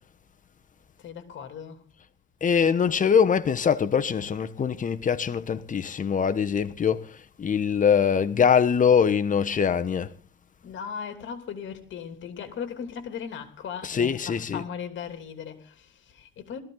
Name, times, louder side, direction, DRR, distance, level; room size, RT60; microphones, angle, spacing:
voice 1, 1.0-1.9 10.6-16.6, left 7 dB, 70° left, 2.9 m, -38 dB
voice 2, 2.4-10.1 13.8-14.6, left 7 dB, 40° left, 1.2 m, -23 dB
19.5 x 14.0 x 3.9 m
cardioid pair, 90°, 20 cm